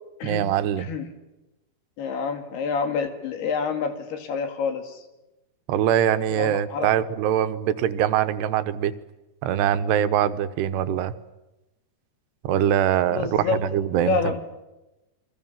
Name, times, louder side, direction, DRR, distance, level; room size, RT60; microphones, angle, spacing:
voice 1, 0.2-0.9 5.7-8.9 9.4-11.1 12.4-14.2, right 10 dB, 85° right, 12 dB, 3.1 m, -23 dB
voice 2, 2.0-5.0 6.3-6.9 13.1-13.6 14.1-14.4, left 5 dB, 75° left, 6 dB, 4.2 m, -27 dB
28.0 x 24.0 x 7.4 m, 1.0 s
omnidirectional pair, 4.7 m